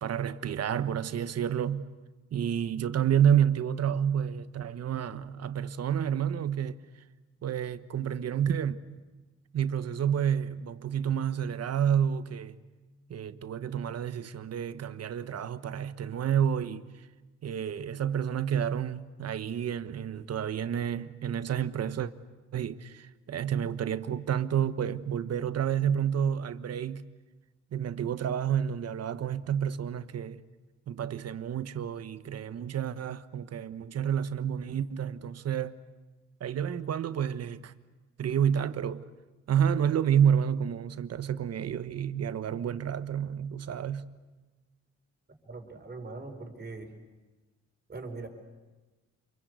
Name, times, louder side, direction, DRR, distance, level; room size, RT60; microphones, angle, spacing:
voice 1, 0.0-1.9 2.3-6.8 7.4-8.8 9.5-12.6 13.1-16.9 17.4-22.1 22.5-27.1 27.7-30.4 30.9-35.8 36.4-37.7 38.2-39.1 39.5-44.1, right 9 dB, 55° right, 1.2 m, -29 dB
voice 2, 45.4-46.9 47.9-48.3, right 3 dB, 35° right, 5.0 m, -41 dB
28.0 x 22.5 x 8.2 m
cardioid pair, 90°, 30 cm